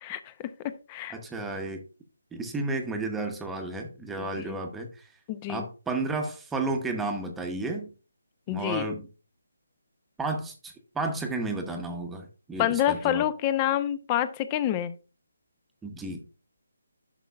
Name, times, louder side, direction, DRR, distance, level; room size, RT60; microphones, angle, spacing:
voice 1, 0.0-1.2 4.2-4.6 5.3-5.6 8.5-8.9 12.6-14.9, left 11 dB, 25° left, 14 dB, 0.6 m, -28 dB
voice 2, 1.1-1.8 2.3-5.1 5.5-7.9 8.5-9.1 10.2-13.3 15.8-16.2, right 2 dB, 5° right, 4 dB, 0.9 m, -32 dB
11.0 x 6.3 x 2.4 m, 0.34 s
figure-of-eight pair, 150°, 0 cm